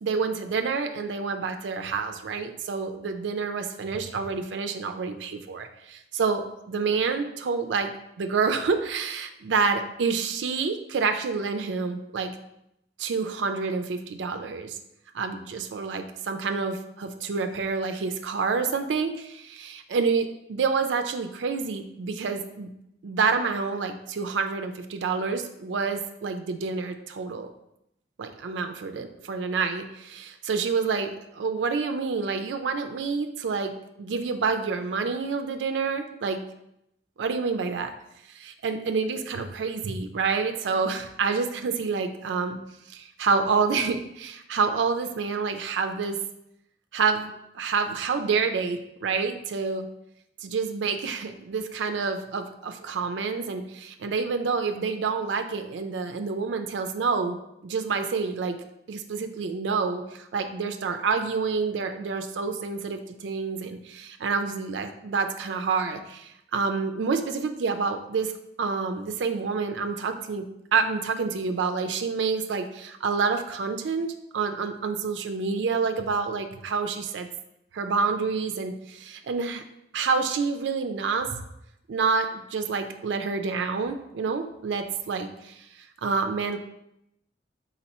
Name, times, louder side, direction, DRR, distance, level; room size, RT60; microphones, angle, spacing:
voice 1, 0.0-7.9 8.2-12.3 13.0-14.8 15.1-22.7 23.0-27.5 28.2-33.7 34.0-36.4 37.2-37.9 38.3-42.6 42.9-46.2 46.9-49.9 50.4-57.4 57.6-58.6 58.9-68.3 68.6-70.4 70.7-77.3 77.7-79.6 79.9-81.3 81.9-85.5 86.0-86.6, right 5 dB, 85° right, 7 dB, 0.4 m, -28 dB
4.1 x 4.0 x 2.9 m, 0.81 s
head